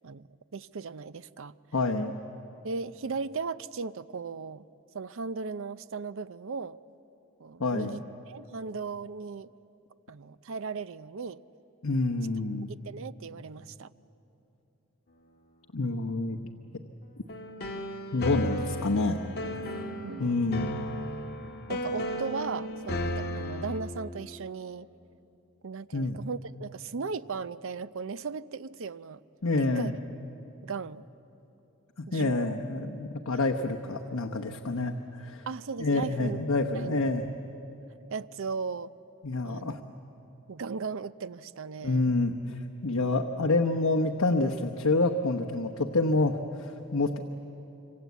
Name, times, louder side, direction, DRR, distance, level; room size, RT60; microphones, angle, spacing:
voice 1, 0.0-1.6 2.6-4.6 4.9-6.8 7.4-8.0 8.3-9.5 10.1-11.4 12.7-13.9 15.8-16.2 20.0-20.7 21.7-24.9 25.6-29.2 29.5-29.9 30.6-31.0 32.1-32.6 33.3-33.6 35.5-36.4 36.8-37.0 38.1-38.9 39.4-39.7 40.5-42.1, right 4 dB, 60° right, 15 dB, 0.5 m, -37 dB
voice 2, 1.7-2.2 7.6-8.0 11.8-12.7 15.7-16.4 18.1-19.2 20.2-20.7 25.9-26.2 29.4-29.9 32.0-35.5 35.8-37.3 39.2-39.8 41.8-47.2, left 2 dB, 70° left, 4 dB, 1.0 m, -28 dB
sound 1, 17.3-23.8, left 1 dB, 45° left, 1.8 m, -34 dB
26.5 x 25.0 x 8.3 m, 3.0 s
head